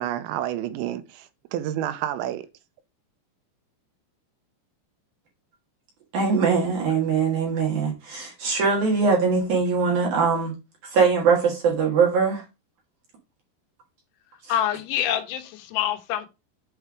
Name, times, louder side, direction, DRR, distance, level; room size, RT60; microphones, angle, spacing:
voice 1, 0.0-2.5, right 12 dB, 90° right, 3.0 m, -29 dB
voice 2, 6.1-10.5 10.9-12.4, right 5 dB, 60° right, 2.2 m, -22 dB
voice 3, 14.5-16.3, left 11 dB, 85° left, 3.3 m, -26 dB
8.3 x 3.3 x 4.7 m
omnidirectional pair, 5.3 m